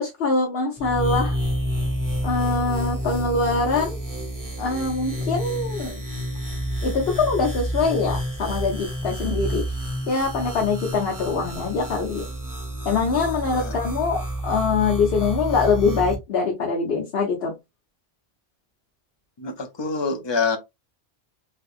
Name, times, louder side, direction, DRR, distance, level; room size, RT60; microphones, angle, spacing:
voice 1, 0.0-1.4 2.2-4.0 4.6-6.0 6.8-9.6 10.1-12.3 12.8-17.5, left 4 dB, 70° left, 1.0 m, -23 dB
sound 1, 0.8-16.1, equal, 20° right, 1.0 m, -29 dB
voice 2, 19.4-20.6, left 4 dB, 35° left, 0.5 m, -25 dB
3.3 x 2.9 x 2.4 m
omnidirectional pair, 1.1 m